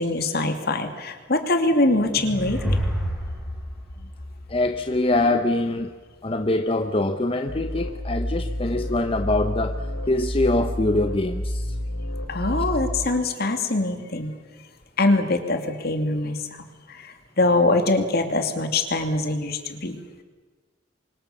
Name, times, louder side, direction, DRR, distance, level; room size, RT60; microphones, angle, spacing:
voice 1, 0.0-2.8 12.3-14.3 15.0-20.0, left 2 dB, 55° left, 6 dB, 2.7 m, -23 dB
sound 1, 1.7-5.2, equal, ahead, 6.7 m, -29 dB
voice 2, 4.5-5.9 6.2-11.7, left 2 dB, 30° left, 7 dB, 0.9 m, -24 dB
sound 2, 7.5-13.1, left 1 dB, 75° left, 4.1 m, -29 dB
29.0 x 24.5 x 7.2 m, 1.3 s
head